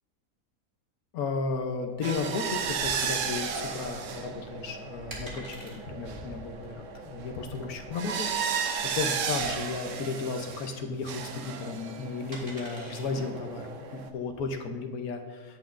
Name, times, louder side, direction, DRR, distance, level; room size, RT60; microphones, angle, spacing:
voice 1, 1.1-8.3 8.9-15.6, left 4 dB, 85° left, 5 dB, 1.3 m, -34 dB
sound 1, 1.4-9.6, left 1 dB, 45° left, 1.4 m, -51 dB
sound 2, 2.0-10.8 11.0-14.1, right 6 dB, 65° right, 1.0 m, -34 dB
sound 3, 4.4-14.5, right 1 dB, 35° right, 1.8 m, -48 dB
16.5 x 5.8 x 2.5 m, 1.4 s
omnidirectional pair, 1.5 m